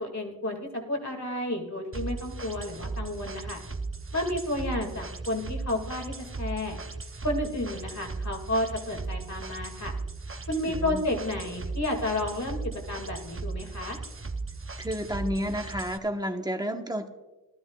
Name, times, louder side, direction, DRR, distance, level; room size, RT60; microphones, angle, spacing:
voice 1, 0.0-3.6 4.1-6.8 7.2-9.9 10.5-14.0, left 1 dB, 50° left, 3 dB, 2.2 m, -31 dB
sound 1, 1.9-16.0, right 3 dB, 35° right, 0.8 m, -37 dB
voice 2, 10.6-11.1 14.8-17.1, equal, 10° right, 5 dB, 1.1 m, -31 dB
18.0 x 12.5 x 2.4 m, 1.1 s
wide cardioid pair, 45°, 36 cm